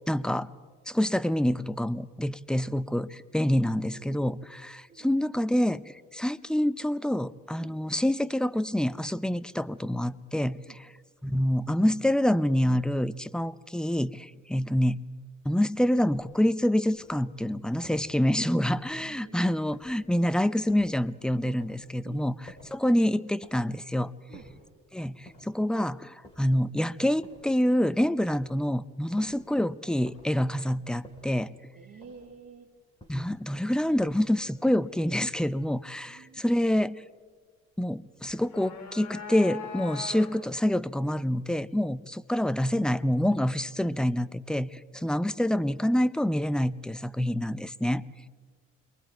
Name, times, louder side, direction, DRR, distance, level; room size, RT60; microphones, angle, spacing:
voice 1, 0.1-0.5 0.9-5.8 6.1-10.9 11.2-15.0 15.4-24.1 24.9-31.5 33.1-37.0 37.8-48.0, left 1 dB, 5° left, 15 dB, 0.6 m, -27 dB
voice 2, 3.9-4.5 4.9-5.1 7.6-7.8 10.7-10.8 14.3-14.4 18.9-20.0 22.0-22.3 24.3-24.5 31.7-32.7 36.1-36.4 44.9-45.1, right 6 dB, 50° right, 3 dB, 2.8 m, -51 dB
sound 1, 16.0-16.4 16.9-17.3 17.8-18.2 18.8-19.2 19.7-20.1 20.7-21.0 21.6-21.9 22.5-22.9 23.4-23.8 24.3-24.7 25.2-25.7 26.2-26.7 27.2-27.6 28.2-28.6 29.2-29.5 30.0-30.5 31.0-31.4 32.0-32.4 33.0-33.4 34.0-34.4, equal, 20° left, 7.0 m, -52 dB
sound 2, 38.3-40.6, left 7 dB, 65° left, 4.2 m, -41 dB
29.0 x 23.0 x 4.5 m, 1.5 s
cardioid pair, 90°, 30 cm